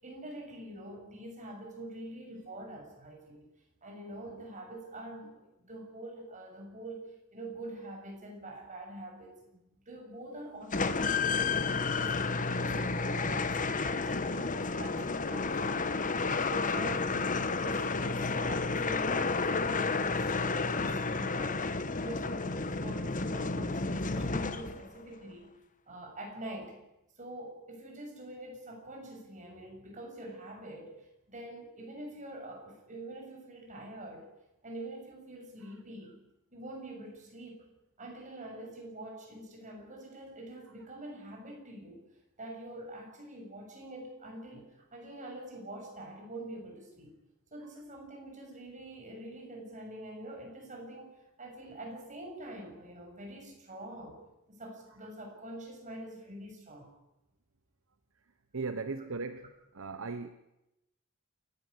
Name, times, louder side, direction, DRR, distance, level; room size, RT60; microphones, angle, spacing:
voice 1, 0.0-3.4 3.8-7.0 7.3-11.6 11.9-15.9 16.2-21.7 22.0-25.5 25.9-26.8 27.2-34.3 34.6-36.2 36.5-37.7 38.0-42.0 42.4-47.1 47.5-51.1 51.4-54.2 54.5-56.9 59.0-59.1, right 1 dB, 35° right, 2 dB, 7.0 m, -45 dB
sound 1, 10.7-25.0, left 4 dB, 40° left, 1.1 m, -31 dB
voice 2, 58.5-59.4 59.7-60.3, right 4 dB, 65° right, 10 dB, 0.9 m, -37 dB
28.0 x 12.5 x 9.6 m, 0.92 s
head